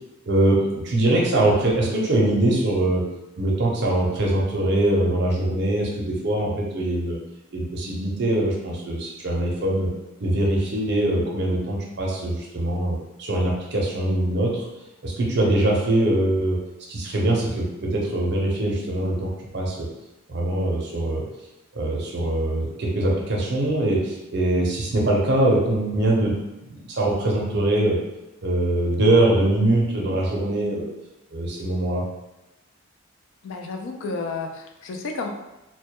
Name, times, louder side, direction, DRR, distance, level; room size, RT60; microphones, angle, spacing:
voice 1, 0.3-3.1 3.4-7.2 7.5-9.9 10.2-14.7 15.0-16.6 16.9-19.9 20.3-21.3 21.7-28.0 28.4-30.9 31.3-32.1, right 1 dB, 50° right, -3 dB, 0.5 m, -22 dB
voice 2, 33.4-35.3, left 3 dB, 65° left, 3 dB, 0.3 m, -31 dB
2.1 x 2.1 x 2.8 m, 1.0 s
head